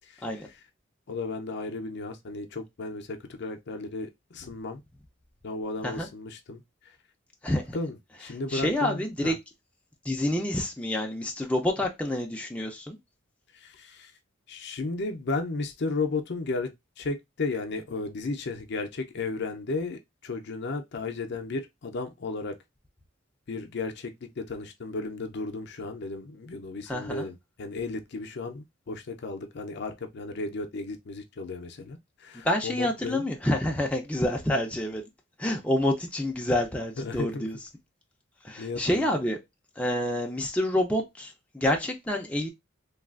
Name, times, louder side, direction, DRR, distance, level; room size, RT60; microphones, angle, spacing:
voice 1, 0.1-0.6 1.1-4.8 5.4-7.0 7.7-9.3 13.5-14.1 14.5-22.6 23.5-33.3 37.0-37.5 38.6-39.3, left 3 dB, 55° left, 0.5 m, -34 dB
voice 2, 7.4-7.8 8.5-9.3 10.0-13.0 26.9-27.3 32.4-35.0 35.4-37.6 38.4-39.4 39.8-42.5, left 1 dB, 5° left, 0.5 m, -28 dB
3.2 x 2.3 x 2.3 m
head